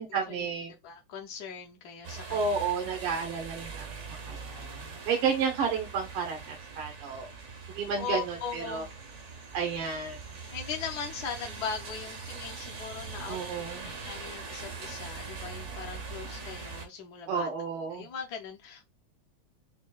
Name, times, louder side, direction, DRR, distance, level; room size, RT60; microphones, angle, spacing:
voice 1, 0.0-0.7 2.3-3.9 4.3-7.3 7.7-8.8 9.5-10.2 13.3-13.9 17.3-18.1, right 5 dB, 85° right, 2.0 m, -31 dB
voice 2, 0.8-2.7 8.0-8.9 10.5-17.5 17.9-18.8, left 6 dB, 65° left, 1.0 m, -39 dB
sound 1, 2.0-16.9, right 4 dB, 55° right, 0.8 m, -42 dB
6.1 x 2.2 x 2.3 m
omnidirectional pair, 2.4 m